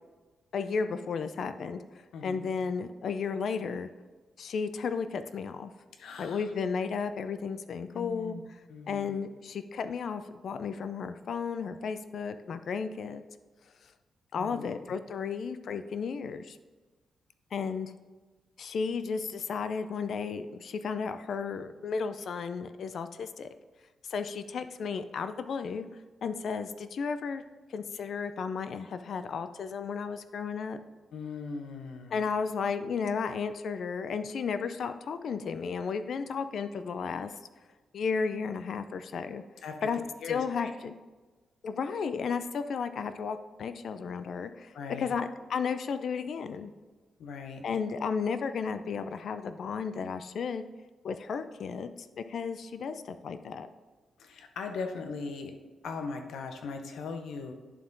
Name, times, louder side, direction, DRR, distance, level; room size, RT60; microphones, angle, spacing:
voice 1, 0.5-1.8 2.2-3.9 4.4-5.7 6.2-8.4 8.9-13.2 14.3-16.6 17.5-17.9 18.6-23.5 24.1-25.9 26.2-27.4 27.7-30.8 32.1-37.3 37.9-39.4 39.8-40.0 40.3-41.0 41.6-46.7 47.6-50.7 51.0-53.7, left 5 dB, 65° left, 10 dB, 0.4 m, -33 dB
voice 2, 2.1-2.5 6.0-6.5 7.9-8.4 8.7-9.2 14.4-14.7 31.1-32.3 39.6-40.7 44.7-45.1 47.2-47.6 54.2-55.5 55.8-57.5, left 4 dB, 80° left, 6 dB, 0.8 m, -39 dB
11.0 x 3.6 x 3.9 m, 1.3 s
cardioid pair, 100°, 0 cm